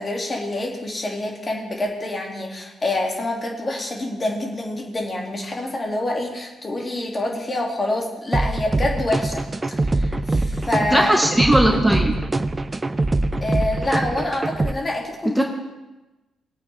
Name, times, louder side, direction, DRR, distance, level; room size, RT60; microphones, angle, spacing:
voice 1, 0.0-11.1 13.4-15.4, left 2 dB, 30° left, 0 dB, 2.4 m, -26 dB
sound 1, 8.3-14.7, right 2 dB, 25° right, 0.6 m, -23 dB
voice 2, 10.9-12.1 15.4-15.5, right 1 dB, 5° right, 2 dB, 1.5 m, -18 dB
19.5 x 8.5 x 3.4 m, 1.1 s
hypercardioid pair, 40°, 0 cm